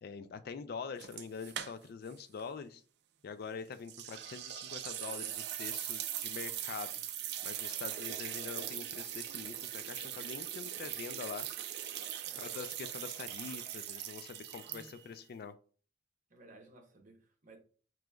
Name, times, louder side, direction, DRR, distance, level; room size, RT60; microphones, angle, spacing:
voice 1, 0.0-2.8 3.2-6.9 7.4-11.5 12.3-15.6, left 5 dB, 55° left, 0.3 m, -44 dB
sound 1, 1.0-2.1 2.4-2.5 3.9-15.2, right 11 dB, 60° right, 0.4 m, -41 dB
voice 2, 12.2-12.6 14.5-15.1 16.3-17.6, right 2 dB, 45° right, 0.9 m, -58 dB
4.9 x 3.1 x 2.3 m
head